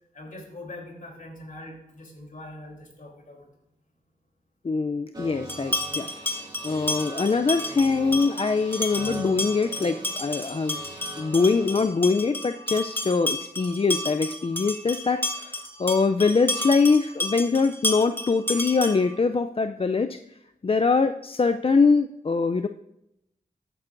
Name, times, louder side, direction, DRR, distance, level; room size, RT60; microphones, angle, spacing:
voice 1, 0.1-3.5 10.4-10.5, left 1 dB, 60° left, 0 dB, 3.3 m, -42 dB
voice 2, 4.6-10.8 11.2-20.2 20.6-22.7, left 4 dB, 40° left, 8 dB, 0.4 m, -23 dB
sound 1, 5.1-11.9, right 2 dB, 25° right, 2.6 m, -41 dB
sound 2, 5.5-19.2, left 2 dB, 15° left, 1.3 m, -32 dB
13.5 x 9.0 x 2.6 m, 0.83 s
cardioid pair, 55°, 16 cm